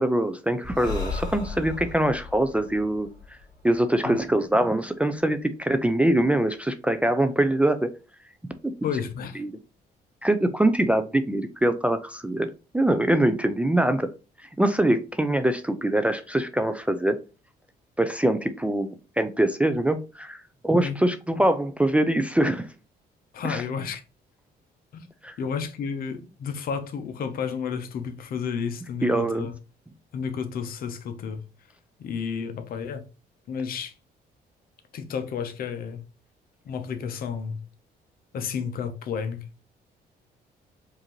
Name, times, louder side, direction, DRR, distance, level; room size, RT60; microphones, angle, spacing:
voice 1, 0.0-3.1 3.6-7.9 8.6-8.7 9.4-9.5 10.2-14.1 14.6-17.2 18.0-20.4 20.6-22.7 23.4-23.6 25.2-25.3 29.0-29.5, right 1 dB, 10° right, 0.3 m, -23 dB
Breathing, 0.6-4.2, left 4 dB, 25° left, 2.3 m, -36 dB
voice 2, 8.8-9.4 20.8-21.0 23.3-24.0 24.9-25.1 25.4-29.5 30.1-31.4 32.0-33.0 33.5-33.9 34.9-36.0 36.7-37.6 38.3-39.6, left 6 dB, 60° left, 0.7 m, -31 dB
4.9 x 2.6 x 2.9 m
cardioid pair, 115°, 17 cm